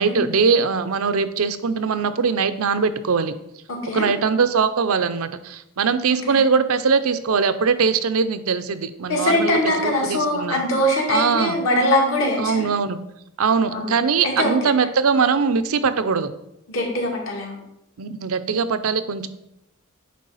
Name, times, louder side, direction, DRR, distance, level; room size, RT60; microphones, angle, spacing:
voice 1, 0.0-3.4 3.9-10.6 11.1-11.6 12.4-13.0 13.4-16.3 18.0-19.3, right 5 dB, 85° right, 11 dB, 0.6 m, -21 dB
voice 2, 3.7-4.1 6.3-6.4 9.1-12.6 13.7-13.9 14.2-14.5 16.7-17.6, left 1 dB, 70° left, -2 dB, 2.1 m, -22 dB
9.4 x 3.3 x 5.5 m, 0.84 s
head